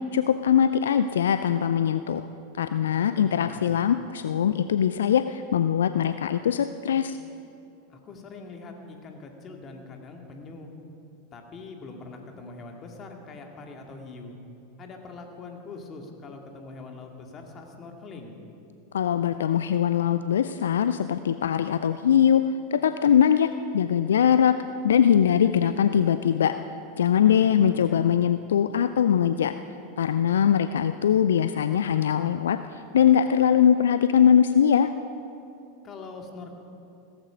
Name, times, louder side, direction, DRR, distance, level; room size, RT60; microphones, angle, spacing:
voice 1, 0.1-2.3 2.6-7.2 18.9-22.4 22.7-23.5 23.7-24.5 24.8-26.5 27.0-29.5 30.0-34.9, left 8 dB, 70° left, 11 dB, 0.4 m, -21 dB
voice 2, 2.9-3.8 7.9-10.7 11.3-14.4 14.8-18.3 27.6-28.0 35.8-36.6, left 3 dB, 30° left, 3 dB, 2.3 m, -43 dB
17.0 x 14.5 x 5.1 m, 2.7 s
figure-of-eight pair, 90°, 0 cm